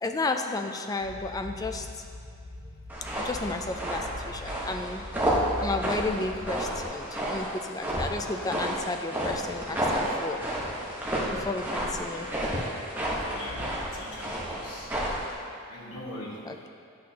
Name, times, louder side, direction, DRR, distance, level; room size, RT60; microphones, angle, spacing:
voice 1, 0.0-2.0 2.7-2.9 3.1-5.0 5.6-10.4 11.3-12.7 16.5-16.7, left 3 dB, 15° left, 5 dB, 0.3 m, -33 dB
sound 1, 1.0-6.9, left 1 dB, 30° left, 1.3 m, -41 dB
sound 2, 2.9-15.3, right 1 dB, 10° right, 1.0 m, -31 dB
voice 2, 13.2-14.9 15.7-16.4, left 1 dB, 80° left, -5 dB, 1.3 m, -41 dB
9.2 x 6.3 x 2.8 m, 2.4 s
head